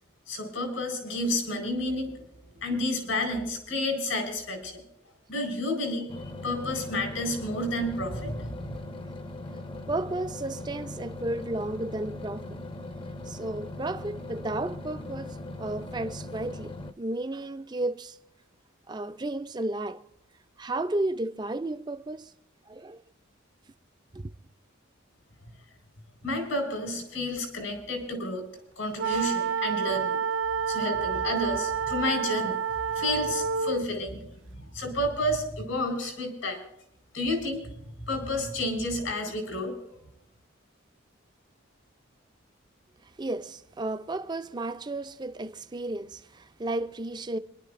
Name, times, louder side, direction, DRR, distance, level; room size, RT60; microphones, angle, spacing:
voice 1, 0.3-2.2 2.6-4.8 5.3-8.8 26.2-28.5 28.8-30.2 30.7-32.6 32.9-34.2 34.5-36.6 37.1-37.7 38.0-39.7, left 1 dB, 85° left, 4.4 m, -30 dB
sound 1, 6.1-16.9, left 2 dB, 25° left, 0.6 m, -40 dB
voice 2, 9.9-12.6 13.3-18.2 18.9-20.0 20.6-22.3 22.7-23.0 24.1-24.3 43.0-47.4, right 2 dB, 20° right, 0.4 m, -33 dB
sound 2, 29.0-33.9, right 6 dB, 70° right, 0.5 m, -29 dB
27.0 x 11.0 x 2.5 m
head